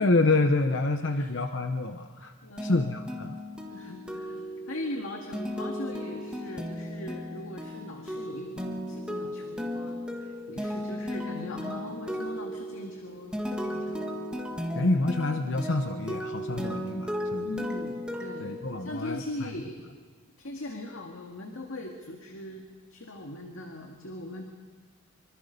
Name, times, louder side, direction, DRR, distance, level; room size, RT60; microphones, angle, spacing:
voice 1, 0.0-2.3 2.6-3.4 14.7-17.5 18.4-19.5, left 2 dB, 55° left, 6 dB, 0.9 m, -27 dB
voice 2, 2.4-2.8 3.7-14.2 14.5-14.7 17.4-19.8 20.4-22.6 22.9-24.5, left 1 dB, 75° left, 2 dB, 2.0 m, -40 dB
sound 1, 2.6-19.3, equal, 5° right, 1.6 m, -35 dB
25.0 x 24.0 x 5.4 m, 1.5 s
head